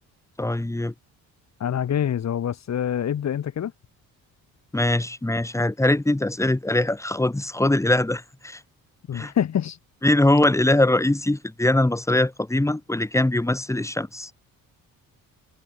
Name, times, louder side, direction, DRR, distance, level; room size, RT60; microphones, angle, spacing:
voice 1, 0.4-0.9 4.7-8.6 9.1-9.3 10.0-14.3, left 1 dB, 10° left, 8.0 m, -22 dB
voice 2, 1.6-3.7 9.1-9.8, left 9 dB, 50° left, 3.2 m, -25 dB
cardioid pair, 130°, 35 cm